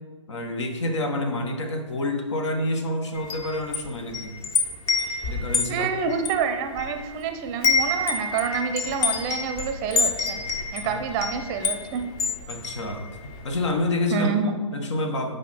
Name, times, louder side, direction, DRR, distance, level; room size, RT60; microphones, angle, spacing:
voice 1, 0.3-4.3 5.3-5.9 10.8-11.0 12.5-14.3 14.7-15.4, left 1 dB, 65° left, 5 dB, 1.2 m, -28 dB
Wind chime, 3.1-7.2 7.5-13.4, left 4 dB, 25° left, 0.8 m, -27 dB
voice 2, 5.7-10.4 10.7-12.0 14.1-14.6, right 6 dB, 25° right, 7 dB, 0.6 m, -27 dB
8.2 x 5.0 x 4.2 m, 1.5 s
hypercardioid pair, 130°, 16 cm